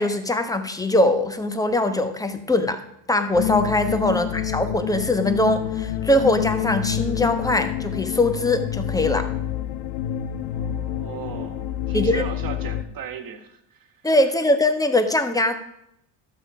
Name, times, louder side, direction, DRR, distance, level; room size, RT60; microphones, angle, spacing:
voice 1, 0.0-2.8 3.1-9.3 11.9-12.2 14.0-15.6, left 1 dB, 10° left, 8 dB, 1.1 m, -21 dB
sound 1, 3.3-12.8, left 10 dB, 75° left, 0.9 m, -27 dB
voice 2, 4.1-4.5 10.5-14.0, right 7 dB, 45° right, 6 dB, 1.6 m, -38 dB
11.5 x 7.6 x 4.9 m, 0.77 s
supercardioid pair, 100°, 46 cm